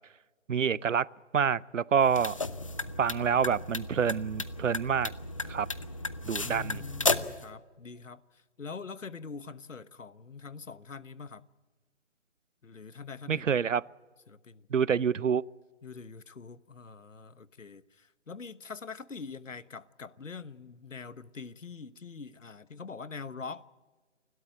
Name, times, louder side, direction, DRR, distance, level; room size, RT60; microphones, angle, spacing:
voice 1, 0.5-1.1 1.3-2.3 3.0-5.1 5.5-5.7 6.2-6.8 13.3-13.8 14.7-15.4, right 7 dB, 80° right, 0.7 m, -27 dB
sound 1, 2.0-7.4, left 3 dB, 25° left, 0.6 m, -34 dB
voice 2, 6.4-11.4 12.6-13.4 14.3-14.7 15.8-23.7, left 5 dB, 80° left, 1.1 m, -44 dB
29.0 x 12.5 x 9.1 m
figure-of-eight pair, 155°, 37 cm